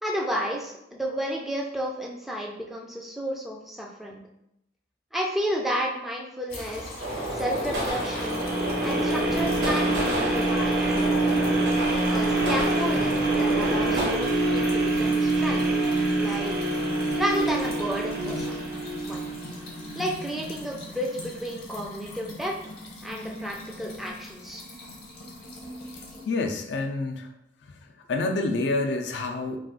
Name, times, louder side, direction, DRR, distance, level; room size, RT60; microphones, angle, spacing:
voice 1, 0.0-4.2 5.1-6.9 7.3-8.4 8.8-11.2 12.1-15.7 16.2-16.6 17.2-18.7 19.0-19.3 19.9-22.5 23.0-24.6, equal, ahead, -1 dB, 0.3 m, -32 dB
sound 1, 6.5-26.3, left 1 dB, 55° left, 0.8 m, -40 dB
sound 2, 7.0-14.1, right 1 dB, 75° right, 1.1 m, -30 dB
sound 3, 7.9-20.0 20.5-20.6, right 2 dB, 55° right, 0.5 m, -26 dB
voice 2, 26.2-27.3 27.6-27.8 28.1-29.6, left 3 dB, 80° left, 4 dB, 0.4 m, -28 dB
2.4 x 2.3 x 3.6 m, 0.79 s
head